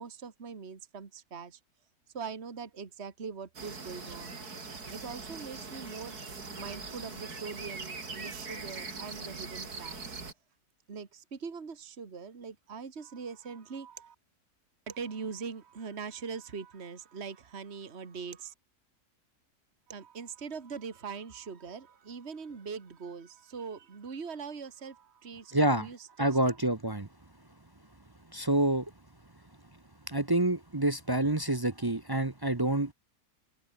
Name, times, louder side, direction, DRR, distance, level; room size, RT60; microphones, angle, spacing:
voice 1, 0.0-1.6 2.1-4.5 4.9-10.1 10.9-14.2 14.9-18.5 19.9-26.6, right 5 dB, 40° right, 2.1 m, -42 dB
sound 1, 3.5-10.3, right 4 dB, 70° right, 3.7 m, -42 dB
voice 2, 25.5-25.9 26.2-27.1 28.3-28.9 30.1-32.9, right 1 dB, 20° right, 0.6 m, -27 dB
omnidirectional pair, 1.7 m